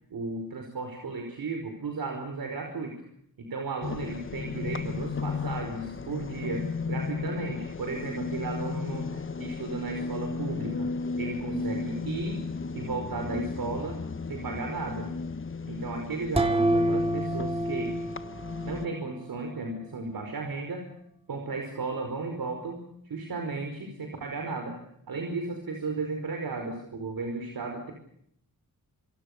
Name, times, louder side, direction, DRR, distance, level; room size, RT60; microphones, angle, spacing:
voice 1, 0.1-2.9 3.4-10.9 11.2-12.4 12.7-14.0 14.3-15.1 15.7-18.0 18.6-20.9 21.3-24.7 25.1-27.9, right 3 dB, 85° right, 3 dB, 5.3 m, -34 dB
sound 1, 3.8-18.9, left 4 dB, 35° left, 1.2 m, -34 dB
sound 2, 16.4-19.1, right 1 dB, 15° right, 2.4 m, -28 dB
28.5 x 24.5 x 6.8 m, 0.71 s
wide cardioid pair, 100°, 35 cm